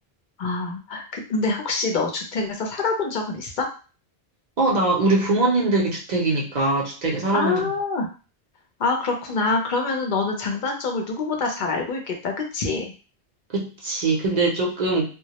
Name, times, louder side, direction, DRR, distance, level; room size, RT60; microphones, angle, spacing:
voice 1, 0.4-3.7 7.3-8.1 8.8-12.9, left 3 dB, 55° left, 2 dB, 0.6 m, -25 dB
voice 2, 4.6-7.7 13.5-15.1, right 2 dB, 45° right, -3 dB, 0.7 m, -22 dB
2.2 x 2.0 x 2.8 m, 0.35 s
omnidirectional pair, 1.1 m